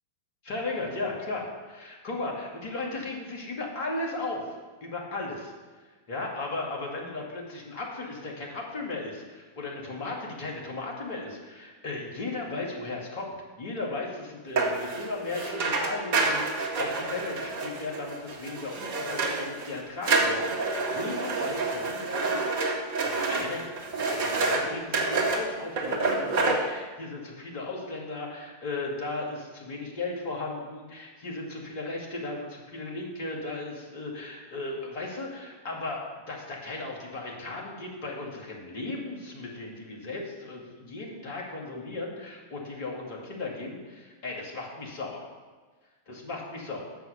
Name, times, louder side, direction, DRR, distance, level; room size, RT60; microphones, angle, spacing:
voice 1, 0.5-4.5 4.8-5.5 6.1-45.3 46.1-46.8, left 2 dB, 50° left, -1 dB, 2.2 m, -36 dB
sound 1, 14.6-19.7 20.0-24.6 24.9-25.4 25.8-26.5, right 3 dB, 45° right, 1.6 m, -28 dB
6.9 x 6.3 x 6.9 m, 1.4 s
figure-of-eight pair, 90°, 0 cm